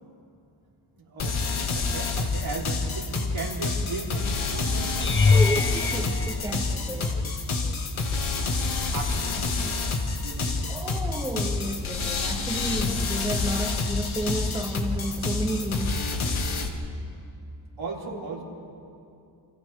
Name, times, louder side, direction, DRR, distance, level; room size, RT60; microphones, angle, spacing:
voice 1, 0.9-5.5 8.9-9.6 10.2-10.8 13.4-13.5 15.2-15.7 16.4-17.0 17.8-18.4, right 3 dB, 75° right, -4 dB, 3.8 m, -38 dB
sound 1, 1.2-16.7, left 3 dB, 80° left, 2.2 m, -28 dB
sound 2, 5.0-7.3 8.0-8.4 8.8-8.9 13.3-13.4, left 4 dB, 25° left, 0.7 m, -24 dB
voice 2, 5.3-7.3 7.6-7.8 10.7-16.0 16.5-16.6, right 1 dB, 10° right, 0 dB, 2.1 m, -32 dB
29.0 x 26.5 x 3.6 m, 2.6 s
cardioid pair, 75°, 47 cm